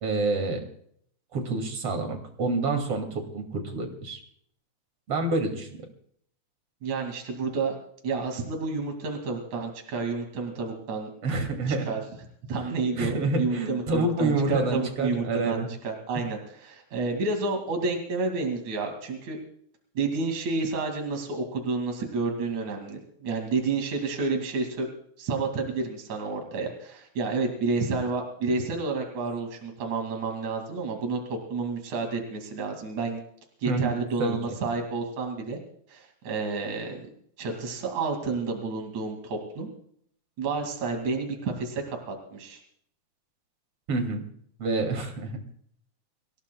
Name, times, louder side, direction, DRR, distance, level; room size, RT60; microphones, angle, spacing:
voice 1, 0.0-0.7 1.3-4.2 5.1-5.7 11.2-11.9 13.0-15.7 33.7-34.6 43.9-44.2 44.6-45.4, right 3 dB, 50° right, 5 dB, 3.5 m, -28 dB
voice 2, 6.8-7.8 8.0-11.1 11.7-12.0 12.5-19.4 20.0-24.9 25.2-33.2 33.6-35.6 35.9-37.0 37.4-39.7 40.4-42.6, right 4 dB, 75° right, 3 dB, 3.9 m, -30 dB
26.0 x 16.5 x 2.3 m, 0.65 s
omnidirectional pair, 3.4 m